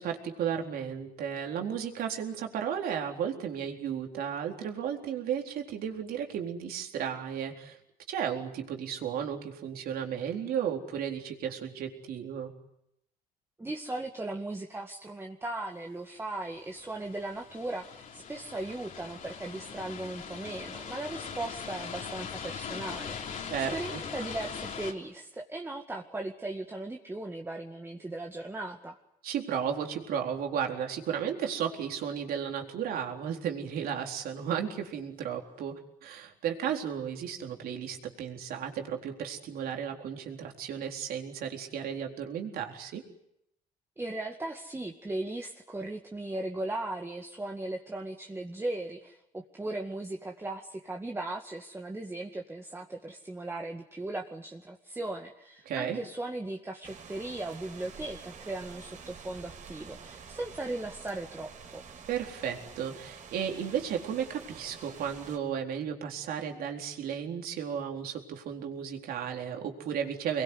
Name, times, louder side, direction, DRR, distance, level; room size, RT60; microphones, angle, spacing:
voice 1, 0.0-7.8 8.1-12.5 23.5-24.0 29.2-43.0 55.7-56.0 62.1-70.4, right 8 dB, 70° right, 2 dB, 4.1 m, -34 dB
voice 2, 13.6-29.0 44.0-61.8, right 2 dB, 15° right, 2 dB, 2.1 m, -37 dB
sound 1, 16.5-24.9, left 6 dB, 55° left, 3.6 m, -41 dB
sound 2, 56.8-65.4, right 6 dB, 50° right, 4.8 m, -48 dB
25.5 x 22.0 x 9.8 m, 0.82 s
cardioid pair, 90°, 16 cm